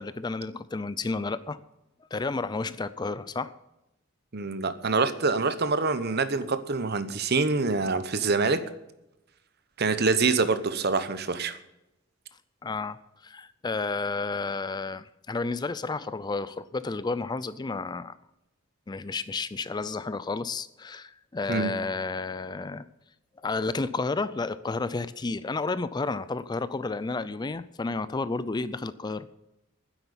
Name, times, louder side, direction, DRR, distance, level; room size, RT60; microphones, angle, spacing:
voice 1, 0.0-1.6 2.1-3.5 12.6-13.0 13.2-18.2 18.9-22.8 23.4-29.3, left 3 dB, 20° left, 15 dB, 0.4 m, -31 dB
voice 2, 4.3-8.6 9.8-11.6 21.5-21.7, right 4 dB, 50° right, 12 dB, 0.9 m, -25 dB
10.0 x 8.1 x 9.8 m, 0.90 s
head